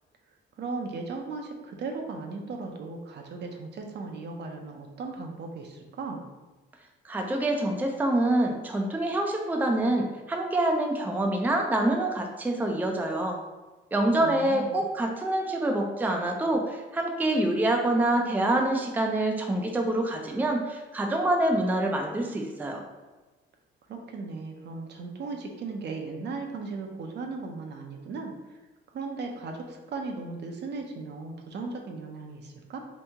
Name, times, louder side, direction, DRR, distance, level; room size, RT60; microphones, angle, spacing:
voice 1, 0.6-6.2 14.2-14.8 23.9-28.6 28.9-32.8, right 3 dB, 60° right, 2 dB, 0.6 m, -37 dB
voice 2, 7.0-13.4 13.9-22.8, right 1 dB, 10° right, 2 dB, 0.4 m, -26 dB
2.9 x 2.6 x 3.4 m, 1.2 s
cardioid pair, 90°, 20 cm